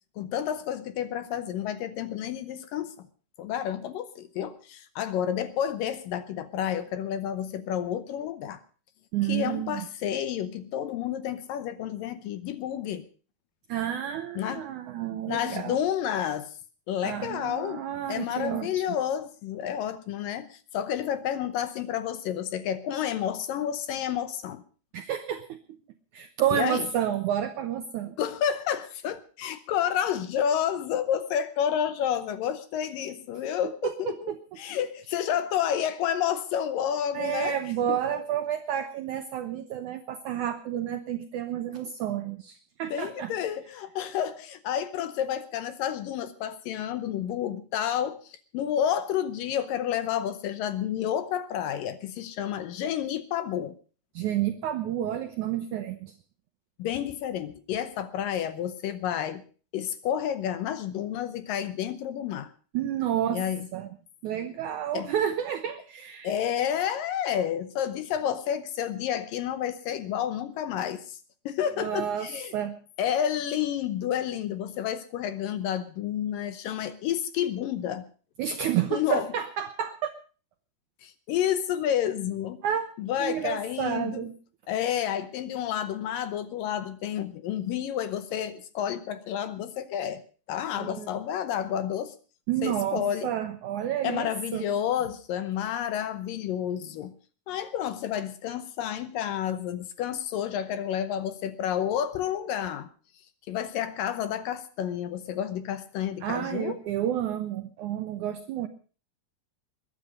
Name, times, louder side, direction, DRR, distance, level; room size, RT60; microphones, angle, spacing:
voice 1, 0.2-3.1 3.4-8.6 9.2-13.0 14.4-14.6 15.3-16.5 16.9-24.6 26.5-26.9 28.2-34.3 34.6-37.6 37.9-38.2 42.9-53.7 56.8-59.4 59.7-62.5 63.3-63.7 64.9-65.1 66.2-71.2 71.5-72.5 73.0-78.1 78.9-79.3 81.0-82.6 83.0-84.3 84.7-90.2 90.5-92.2 92.6-93.3 94.0-97.1 97.5-102.9 103.5-106.8, left 9 dB, 70° left, 12 dB, 2.3 m, -30 dB
voice 2, 9.1-9.9 13.7-15.8 17.0-18.7 24.9-25.6 26.1-28.1 33.8-34.4 37.1-43.3 54.1-56.1 62.7-63.4 63.7-63.9 64.2-66.3 71.8-72.7 78.4-80.1 82.6-82.9 83.2-84.3 90.7-91.1 92.5-94.7 106.2-108.7, right 10 dB, 80° right, 8 dB, 1.7 m, -30 dB
21.5 x 10.0 x 5.3 m, 0.39 s
omnidirectional pair, 4.5 m